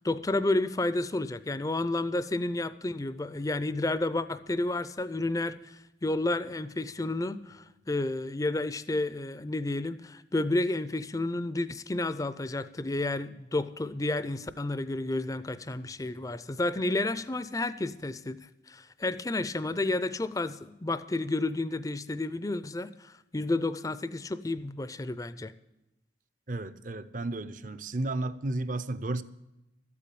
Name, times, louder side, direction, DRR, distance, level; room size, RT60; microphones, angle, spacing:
voice 1, 0.0-18.4 18.7-25.5, left 2 dB, 20° left, 0.5 m, -31 dB
voice 2, 26.5-29.2, right 2 dB, 45° right, 0.6 m, -33 dB
13.0 x 8.5 x 8.5 m
head